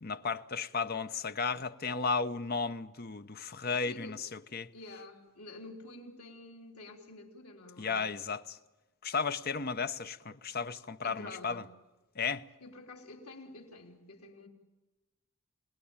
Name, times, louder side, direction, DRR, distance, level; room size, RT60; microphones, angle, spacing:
voice 1, 0.0-4.7 7.8-8.6 9.0-11.6 12.2-12.4, left 5 dB, 45° left, 0.7 m, -34 dB
voice 2, 3.7-4.2 4.7-8.2 11.0-11.7 12.6-14.5, left 2 dB, 85° left, 3.5 m, -49 dB
28.0 x 19.0 x 8.8 m
head